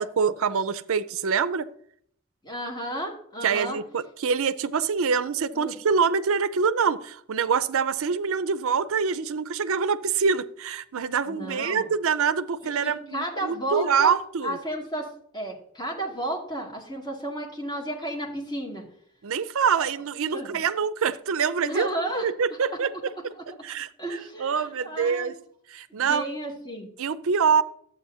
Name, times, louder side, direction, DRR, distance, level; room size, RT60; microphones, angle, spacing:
voice 1, 0.0-1.7 3.4-14.6 19.2-21.9 22.2-22.9 23.5-23.9 24.4-25.4 25.7-26.3 27.0-27.6, right 6 dB, 65° right, 0.5 m, -25 dB
voice 2, 2.4-3.8 5.5-5.7 11.3-11.9 12.6-14.2 14.4-18.8 19.8-19.9 20.3-20.6 21.7-22.3 22.7-22.8 23.4-23.5 24.0-25.3 25.9-26.9, right 1 dB, 20° left, 2.4 m, -33 dB
12.5 x 8.4 x 2.7 m
head